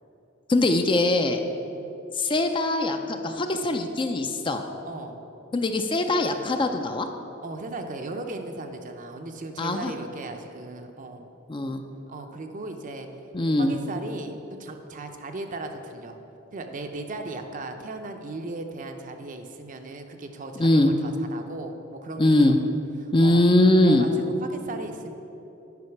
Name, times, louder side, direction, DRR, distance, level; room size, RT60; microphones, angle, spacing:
voice 1, 0.5-1.4 2.2-4.6 5.5-7.1 9.6-9.9 11.5-11.8 13.3-13.7 20.6-20.9 22.2-22.6 23.1-24.1, left 1 dB, 25° left, 6 dB, 0.4 m, -21 dB
voice 2, 4.8-5.2 7.4-11.3 12.1-13.1 13.6-16.2 16.5-22.3 23.0-23.4 23.8-24.1 24.4-25.1, right 2 dB, 40° right, 6 dB, 0.6 m, -37 dB
9.5 x 5.3 x 5.9 m, 3.0 s
head